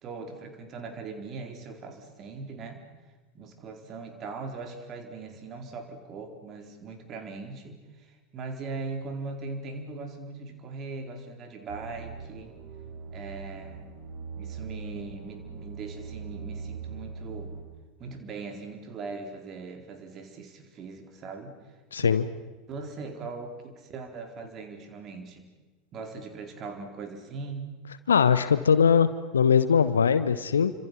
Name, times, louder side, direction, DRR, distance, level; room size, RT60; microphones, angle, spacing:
voice 1, 0.0-2.8 3.3-12.5 13.1-13.9 14.3-17.5 18.0-21.7 22.0-22.1 22.7-25.5 25.9-27.7, right 4 dB, 35° right, 5 dB, 4.2 m, -40 dB
sound 1, 11.7-17.6, right 5 dB, 55° right, 4.6 m, -41 dB
voice 2, 21.9-22.3 28.1-30.7, left 7 dB, 75° left, 13 dB, 0.9 m, -21 dB
30.0 x 26.0 x 5.8 m, 1.2 s
figure-of-eight pair, 75°, 0 cm